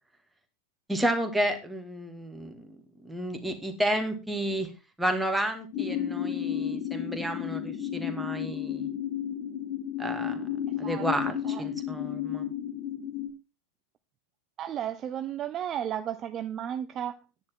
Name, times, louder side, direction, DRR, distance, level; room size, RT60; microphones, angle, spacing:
voice 1, 0.9-2.8 3.0-4.7 5.0-8.9 10.0-10.5 10.8-11.3 11.6-12.5, right 1 dB, 5° right, 2.2 m, -31 dB
sound 1, 5.7-13.3, left 9 dB, 40° left, 3.1 m, -32 dB
voice 2, 10.7-11.1 11.4-11.7 14.6-17.2, right 10 dB, 30° right, 0.6 m, -34 dB
10.0 x 9.9 x 4.5 m
figure-of-eight pair, 90°, 0 cm